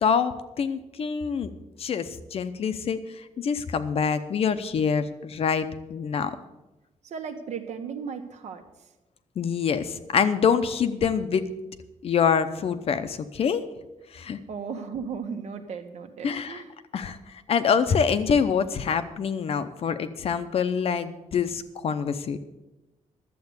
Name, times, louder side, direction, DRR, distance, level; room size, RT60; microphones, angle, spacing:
voice 1, 0.0-1.5 1.8-6.4 9.4-11.4 12.0-13.6 14.1-14.4 16.2-16.6 16.9-17.2 17.5-22.4, left 6 dB, 50° left, 10 dB, 0.8 m, -25 dB
voice 2, 7.0-8.6 14.5-16.7, right 6 dB, 65° right, 6 dB, 1.4 m, -35 dB
12.0 x 7.8 x 8.1 m, 1.0 s
wide cardioid pair, 165°, 13 cm